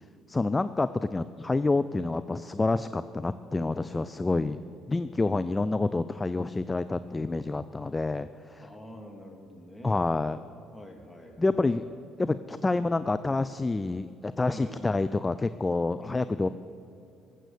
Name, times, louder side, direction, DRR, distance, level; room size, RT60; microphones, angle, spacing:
voice 1, 0.3-4.6 4.9-8.7 9.8-10.4 11.4-11.8 12.2-16.5, left 3 dB, 20° left, 13 dB, 0.4 m, -28 dB
voice 2, 8.6-10.1 10.7-11.9 14.5-14.8 16.0-16.5, equal, 5° left, 2 dB, 2.4 m, -46 dB
19.0 x 7.6 x 6.9 m, 2.5 s
hypercardioid pair, 50°, 0 cm